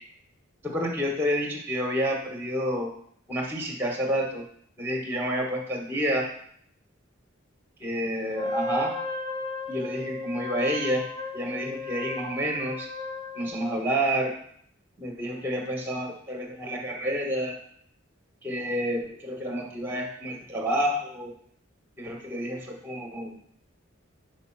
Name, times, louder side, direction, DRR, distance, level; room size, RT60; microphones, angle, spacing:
voice 1, 0.6-2.9 3.3-4.4 4.8-6.3 7.8-9.0 9.7-11.1 11.3-12.9 13.3-14.4 15.0-17.6 18.4-21.3 22.0-23.3, equal, 10° right, 1 dB, 1.3 m, -29 dB
Wind instrument woodwind instrument, 8.3-13.9, left 2 dB, 20° left, 0.7 m, -35 dB
5.5 x 5.2 x 5.8 m, 0.64 s
head